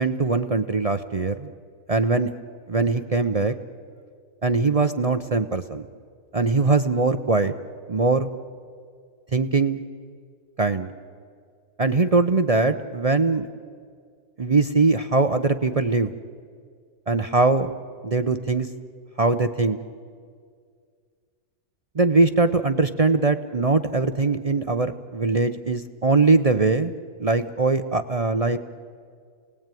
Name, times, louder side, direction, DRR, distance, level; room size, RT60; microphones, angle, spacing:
voice 1, 0.0-1.5 1.9-2.3 2.7-3.5 4.4-5.9 6.3-7.5 7.9-8.3 9.3-9.8 10.6-10.9 11.8-13.5 14.4-16.1 17.1-17.7 18.0-18.7 19.2-19.8 21.9-26.9 27.2-28.6, right 3 dB, 40° right, 9 dB, 0.5 m, -21 dB
29.5 x 19.0 x 9.1 m, 2.1 s
omnidirectional pair, 1.6 m